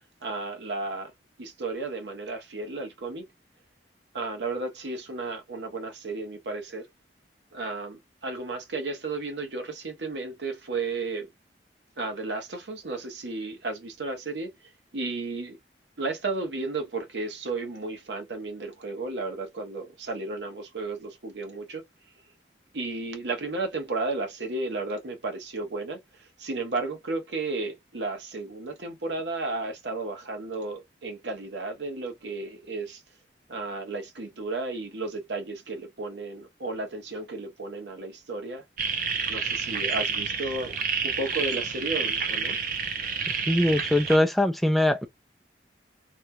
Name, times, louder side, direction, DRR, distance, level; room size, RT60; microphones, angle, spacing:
voice 1, 0.2-1.1 1.4-3.2 4.1-6.9 7.5-11.3 12.0-14.5 14.9-15.6 16.0-21.8 22.7-26.0 26.4-33.0 33.5-38.6 39.3-40.8 41.0-42.6, right 3 dB, 90° right, 1.0 m, -33 dB
sound 1, 38.8-44.2, right 5 dB, 50° right, 0.6 m, -29 dB
voice 2, 43.5-45.1, left 1 dB, ahead, 0.3 m, -22 dB
3.1 x 2.2 x 2.6 m
head